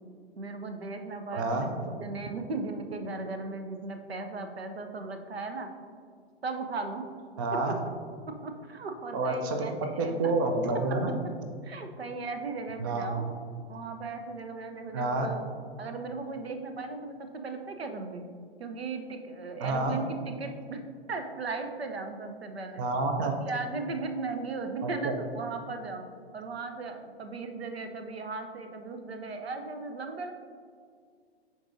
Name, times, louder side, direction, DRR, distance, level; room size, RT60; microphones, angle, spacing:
voice 1, 0.4-5.7 6.4-7.1 7.5-7.7 8.4-10.3 11.6-13.3 13.7-15.4 15.8-18.2 18.6-20.8 21.1-22.8 23.2-26.1 26.3-30.3, right 3 dB, 70° right, 6 dB, 0.8 m, -37 dB
voice 2, 1.3-1.7 7.4-7.7 9.1-9.7 10.0-11.2 12.8-13.3 14.9-15.3 19.6-20.0 22.8-23.3 24.8-25.1, right 2 dB, 20° right, 4 dB, 0.3 m, -29 dB
10.5 x 4.0 x 2.6 m, 2.1 s
figure-of-eight pair, 110°, 32 cm